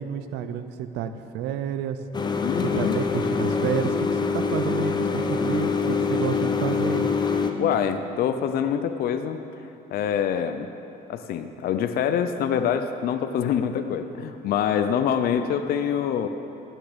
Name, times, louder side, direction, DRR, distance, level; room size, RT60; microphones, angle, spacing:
voice 1, 0.0-2.0 2.8-7.1, right 9 dB, 85° right, 11 dB, 0.6 m, -30 dB
sound 1, 2.1-7.5, left 5 dB, 25° left, 0.8 m, -25 dB
voice 2, 2.4-3.0 7.6-9.4 9.9-10.7 11.1-16.3, left 8 dB, 65° left, 8 dB, 0.5 m, -25 dB
13.0 x 9.2 x 5.0 m, 3.0 s
cardioid pair, 110°, 17 cm